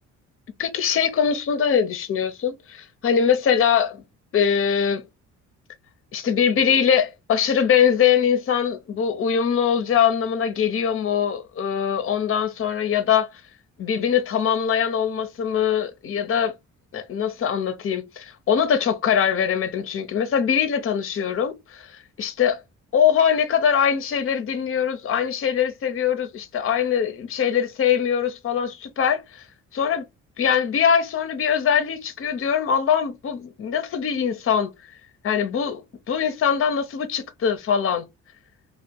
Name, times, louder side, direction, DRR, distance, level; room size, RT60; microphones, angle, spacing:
voice 1, 0.6-4.0 4.3-5.0 6.1-13.4 13.8-16.5 16.9-22.6 22.9-29.4 29.7-30.0 30.4-34.7 35.2-35.8 36.1-38.1, left 8 dB, 45° left, 0.7 m, -22 dB
2.8 x 2.3 x 3.6 m
cardioid pair, 90°, 30 cm